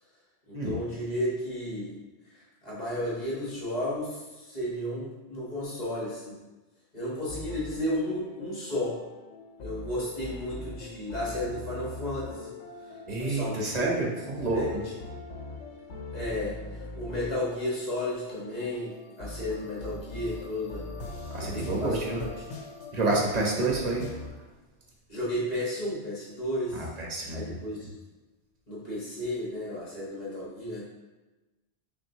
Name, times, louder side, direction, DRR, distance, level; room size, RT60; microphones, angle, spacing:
voice 1, 0.5-2.0 2.3-6.4 6.9-9.0 9.6-12.5 12.8-13.7 14.5-15.0 16.1-20.9 21.4-22.5 25.1-26.9 27.3-27.9 28.7-30.8, left 1 dB, 40° left, -7 dB, 1.2 m, -33 dB
sound 1, 7.3-24.3, left 3 dB, 85° left, 0.9 m, -41 dB
voice 2, 13.1-14.8 21.3-22.2 22.9-24.1 26.7-27.6, right 2 dB, 40° right, -1 dB, 0.8 m, -29 dB
5.8 x 2.4 x 2.7 m, 1.1 s
omnidirectional pair, 1.2 m